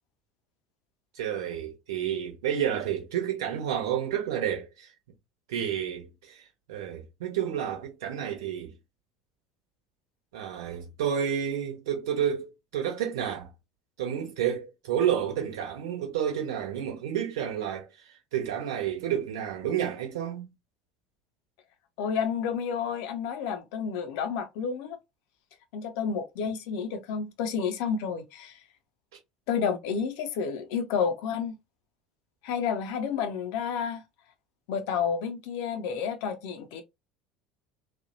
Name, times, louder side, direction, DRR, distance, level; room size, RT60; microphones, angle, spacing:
voice 1, 1.2-4.9 5.5-6.4 6.7-8.7 10.3-13.5 14.0-17.9 18.3-20.5, right 9 dB, 65° right, 1.0 m, -30 dB
voice 2, 22.0-25.0 25.7-28.6 29.5-31.5 32.4-34.0 34.7-36.8, left 6 dB, 55° left, 0.6 m, -30 dB
3.3 x 2.3 x 2.6 m
figure-of-eight pair, 65°, 2 cm